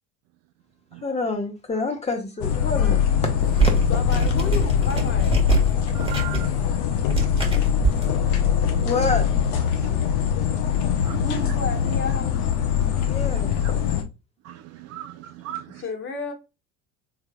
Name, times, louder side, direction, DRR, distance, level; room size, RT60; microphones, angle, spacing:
voice 1, 1.0-3.3 8.8-9.3 13.0-13.6, left 3 dB, 15° left, 1.3 m, -27 dB
sound 1, 2.4-14.0, left 8 dB, 55° left, 1.0 m, -22 dB
sound 2, 3.4-8.1, right 4 dB, 15° right, 1.7 m, -26 dB
voice 2, 3.9-5.4 9.9-10.6 11.1-12.5 15.7-16.3, left 4 dB, 35° left, 1.2 m, -33 dB
voice 3, 5.9-6.5 7.2-7.3 11.0-11.2 13.3-14.0 14.4-15.8, right 13 dB, 45° right, 0.4 m, -38 dB
3.5 x 3.4 x 2.3 m
hypercardioid pair, 75°, 36 cm